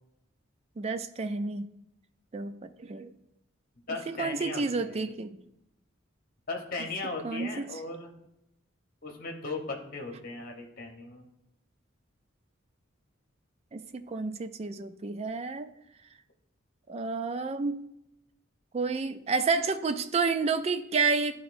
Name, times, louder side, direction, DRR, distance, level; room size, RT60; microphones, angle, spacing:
voice 1, 0.8-1.7 2.3-3.1 4.1-5.4 7.2-7.7 13.7-15.7 16.9-17.8 18.7-21.4, right 4 dB, 30° right, 10 dB, 0.3 m, -30 dB
voice 2, 3.9-5.0 6.5-8.1 9.0-11.3, left 3 dB, 45° left, 2 dB, 1.0 m, -37 dB
11.0 x 3.8 x 2.6 m, 0.83 s
head